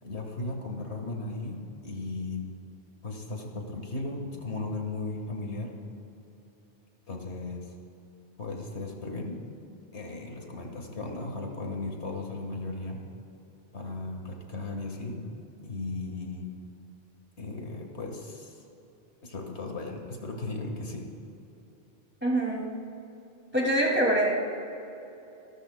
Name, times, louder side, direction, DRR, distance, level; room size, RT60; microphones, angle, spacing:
voice 1, 0.0-2.5 3.0-5.7 7.1-7.7 8.4-9.4 9.9-13.0 13.7-15.2 15.6-16.5 17.4-18.6 19.2-21.1, left 2 dB, 85° left, 2 dB, 1.8 m, -36 dB
voice 2, 22.2-22.7 23.5-24.3, right 1 dB, 10° right, -3 dB, 2.3 m, -24 dB
26.5 x 13.0 x 2.2 m, 3.0 s
omnidirectional pair, 1.1 m